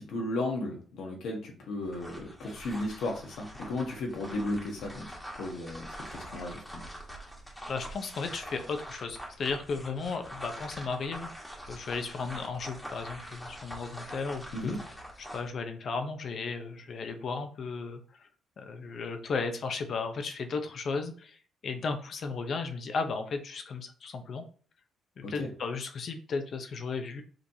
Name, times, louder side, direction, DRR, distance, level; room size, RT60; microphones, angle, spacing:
voice 1, 0.0-6.8 14.5-14.8 25.2-25.5, left 2 dB, 75° left, 1 dB, 1.1 m, -35 dB
sound 1, 1.8-15.5, equal, 5° left, 1.3 m, -44 dB
voice 2, 7.7-11.3 11.7-14.8 15.2-18.3 18.6-24.4 25.2-27.2, left 4 dB, 55° left, 7 dB, 0.7 m, -35 dB
5.0 x 3.2 x 2.8 m, 0.43 s
cardioid pair, 100°, 0 cm